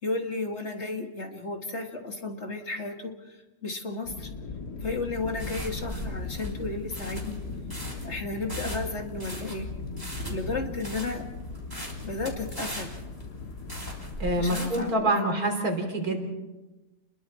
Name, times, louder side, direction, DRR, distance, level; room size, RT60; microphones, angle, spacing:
voice 1, 0.0-4.3 4.8-7.4 8.0-9.7 10.3-11.3 12.0-12.9 14.4-15.4, left 3 dB, 45° left, 3 dB, 2.1 m, -33 dB
sound 1, 4.1-14.5, left 3 dB, 90° left, 2.4 m, -38 dB
sound 2, 4.8-14.9, right 1 dB, 15° right, 3.4 m, -40 dB
voice 2, 14.2-16.3, right 1 dB, 65° right, 3 dB, 3.9 m, -26 dB
30.0 x 21.5 x 4.2 m, 1.1 s
omnidirectional pair, 1.7 m